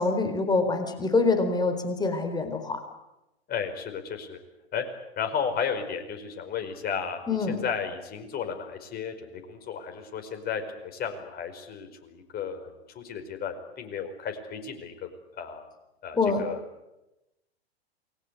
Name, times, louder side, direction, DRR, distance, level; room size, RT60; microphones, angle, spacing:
voice 1, 0.0-2.8 7.3-7.6 16.1-16.4, left 3 dB, 10° left, 6 dB, 4.3 m, -25 dB
voice 2, 3.5-4.4 4.7-4.8 5.2-15.1 15.4-15.6 16.0-16.6, left 7 dB, 30° left, 6 dB, 5.0 m, -34 dB
28.5 x 21.0 x 8.2 m, 0.97 s
hypercardioid pair, 105°, 32 cm